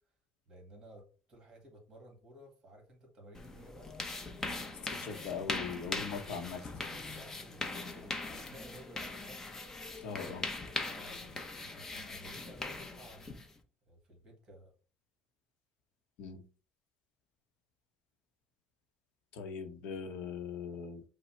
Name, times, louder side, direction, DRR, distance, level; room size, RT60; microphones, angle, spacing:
voice 1, 0.5-5.5 6.1-9.6 10.2-13.4 13.9-14.7, right 1 dB, 25° right, 1.8 m, -55 dB
sound 1, 3.3-13.6, left 3 dB, 15° left, 0.6 m, -41 dB
voice 2, 5.0-6.6 10.0-10.5 16.2-16.4 19.3-21.0, left 6 dB, 75° left, 0.8 m, -40 dB
5.6 x 2.1 x 4.3 m
cardioid pair, 150°, 3 cm